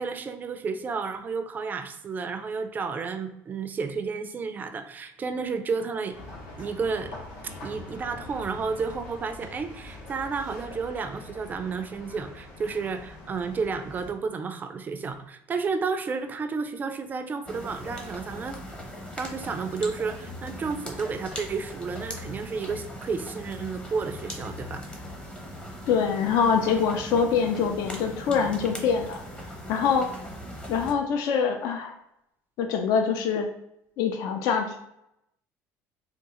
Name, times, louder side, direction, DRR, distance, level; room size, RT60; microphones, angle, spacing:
voice 1, 0.0-6.2 6.6-7.1 7.6-18.6 19.2-24.9, right 5 dB, 30° right, 8 dB, 0.3 m, -31 dB
sound 1, 6.1-14.1, left 2 dB, 90° left, 1.1 m, -43 dB
sound 2, 17.5-30.9, left 1 dB, 15° left, 0.7 m, -39 dB
voice 2, 25.9-29.2 29.7-30.1 30.7-31.9 32.6-33.5 34.0-34.8, left 6 dB, 70° left, 4 dB, 0.4 m, -24 dB
3.5 x 2.3 x 2.8 m, 0.82 s
cardioid pair, 120°, 6 cm